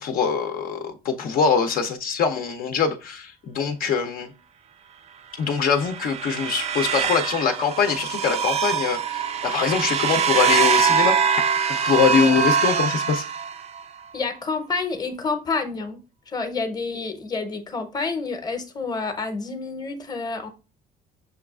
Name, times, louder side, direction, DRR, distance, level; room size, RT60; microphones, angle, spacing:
voice 1, 0.0-4.3 5.4-11.2 11.8-13.2, left 6 dB, 60° left, 0.6 m, -23 dB
sound 1, 5.5-13.8, right 6 dB, 40° right, 0.4 m, -23 dB
voice 2, 14.1-16.0 16.3-20.5, left 4 dB, 25° left, 0.8 m, -28 dB
6.5 x 2.3 x 2.3 m
cardioid pair, 110°, 17 cm